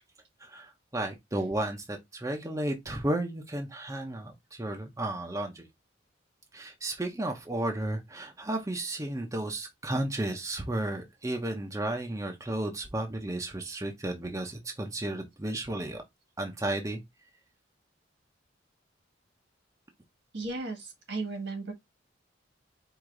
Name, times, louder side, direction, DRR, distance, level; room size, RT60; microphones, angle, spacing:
voice 1, 0.4-5.7 6.5-16.0 16.4-17.0, right 1 dB, 15° right, 0.6 m, -33 dB
voice 2, 20.3-21.7, right 3 dB, 70° right, 1.6 m, -35 dB
4.7 x 2.6 x 3.7 m
head